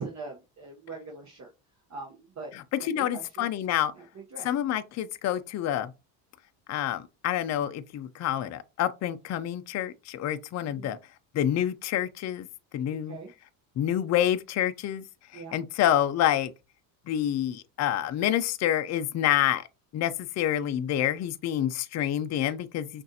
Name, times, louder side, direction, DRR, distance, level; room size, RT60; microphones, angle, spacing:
voice 1, 0.0-1.5 1.9-2.5 2.8-3.5 3.9-4.5 10.7-11.0 12.9-13.3 15.3-15.6, right 4 dB, 35° right, 1.0 m, -42 dB
voice 2, 2.9-3.9 4.4-5.9 6.7-11.0 11.3-12.5 12.7-13.2 13.8-15.0 15.3-16.5 17.1-19.6 19.9-23.0, left 11 dB, 35° left, 0.5 m, -27 dB
6.0 x 2.6 x 2.8 m
supercardioid pair, 100°, 49 cm